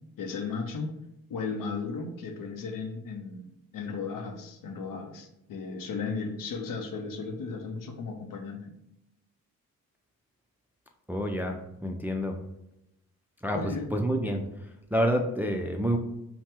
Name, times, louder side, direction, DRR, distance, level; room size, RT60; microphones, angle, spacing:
voice 1, 0.2-1.0 1.3-8.7 13.5-13.9, left 4 dB, 60° left, 5 dB, 0.6 m, -35 dB
voice 2, 11.1-12.4 13.4-13.6 13.9-14.4 14.9-16.0, equal, 5° right, 3 dB, 0.3 m, -28 dB
2.8 x 2.1 x 3.3 m, 0.85 s
supercardioid pair, 45°, 36 cm